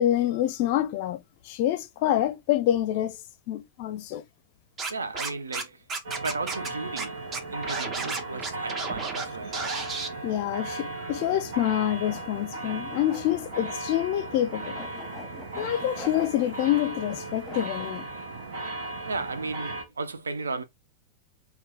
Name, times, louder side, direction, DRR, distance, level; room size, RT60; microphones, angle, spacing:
voice 1, 0.0-3.2 3.5-4.2 10.2-14.8 15.6-18.1, left 12 dB, 50° left, 0.4 m, -27 dB
Scratching (performance technique), 4.8-5.6 5.9-6.7 7.0-7.1 7.3-9.2 9.5-10.1, right 4 dB, 25° right, 0.6 m, -32 dB
voice 2, 4.9-5.8 6.1-7.2 7.4-9.6 19.1-20.6, right 3 dB, 75° right, 0.4 m, -34 dB
sound 1, 6.0-19.8, right 2 dB, 55° right, 0.9 m, -36 dB
sound 2, 11.1-18.0, left 2 dB, 10° left, 0.9 m, -46 dB
2.8 x 2.2 x 3.5 m
figure-of-eight pair, 90°, 0 cm